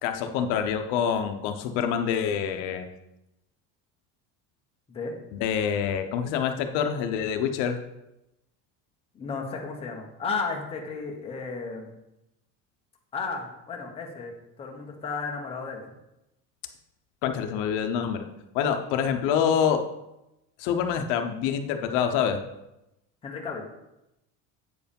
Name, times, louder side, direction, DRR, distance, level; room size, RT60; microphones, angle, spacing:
voice 1, 0.0-2.9 5.4-7.8 17.2-18.3 18.5-19.8 20.6-22.4, left 8 dB, 75° left, 6 dB, 0.9 m, -26 dB
voice 2, 9.1-12.0 13.1-15.8 23.2-23.7, left 4 dB, 15° left, 0 dB, 1.0 m, -34 dB
8.4 x 4.7 x 5.3 m, 0.90 s
cardioid pair, 175°, 35 cm